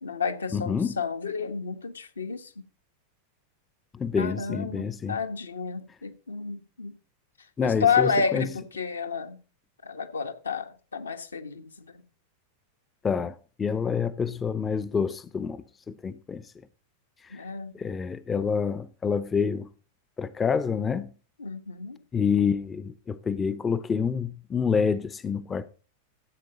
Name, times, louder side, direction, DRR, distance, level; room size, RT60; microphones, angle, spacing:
voice 1, 0.0-2.5 4.2-6.9 7.6-9.4 9.8-12.0 17.3-17.7 21.4-22.0, left 5 dB, 75° left, 1.4 m, -30 dB
voice 2, 0.5-1.0 3.9-5.2 7.6-8.5 13.0-16.5 17.2-17.5 17.7-19.7 20.2-21.1 22.1-25.7, left 6 dB, 20° left, 0.6 m, -28 dB
14.0 x 8.2 x 4.1 m
figure-of-eight pair, 90°, 0 cm